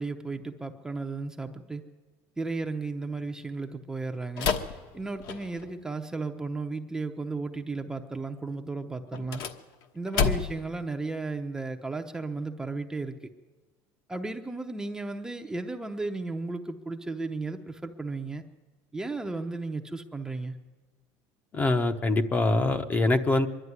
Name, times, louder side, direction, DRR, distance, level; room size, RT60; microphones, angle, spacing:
voice 1, 0.0-1.8 2.4-4.5 4.9-9.4 9.9-13.2 14.1-18.4 18.9-20.6, right 3 dB, 5° right, 5 dB, 0.8 m, -34 dB
sound 1, 4.4-5.8 9.1-10.7, left 6 dB, 55° left, 1.2 m, -30 dB
voice 2, 21.5-23.5, left 2 dB, 20° left, 8 dB, 0.9 m, -24 dB
24.0 x 11.5 x 9.6 m, 1.3 s
cardioid pair, 155°, 8 cm